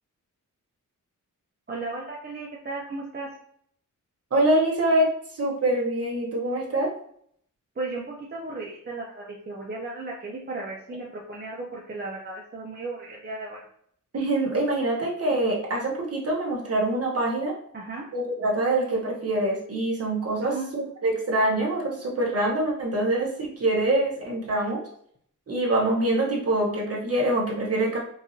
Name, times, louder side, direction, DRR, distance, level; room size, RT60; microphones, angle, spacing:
voice 1, 1.7-3.3 7.8-13.6 17.7-18.1 20.4-20.9, right 3 dB, 30° right, -3 dB, 0.6 m, -35 dB
voice 2, 4.3-6.9 14.1-17.5 18.1-24.8 25.5-28.0, right 1 dB, 50° right, -2 dB, 1.1 m, -25 dB
4.7 x 2.6 x 2.6 m, 0.65 s
wide cardioid pair, 145°, 32 cm